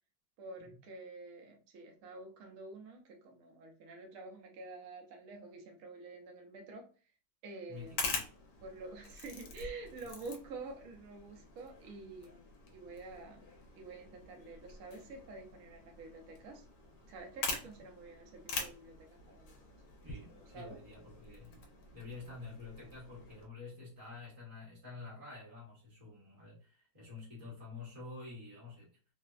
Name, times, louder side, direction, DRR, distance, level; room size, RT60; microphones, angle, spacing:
voice 1, 0.4-6.9 7.4-8.1 8.6-13.5 13.7-16.6 17.1-19.6 19.9-20.0 20.3-20.8, right 3 dB, 65° right, 2 dB, 0.9 m, -48 dB
sound 1, 7.7-23.5, left 4 dB, 70° left, 1.2 m, -45 dB
voice 2, 7.7-8.2 20.0-21.7 21.9-28.9, left 3 dB, 25° right, -7 dB, 0.7 m, -49 dB
3.2 x 2.0 x 2.3 m, 0.37 s
omnidirectional pair, 2.0 m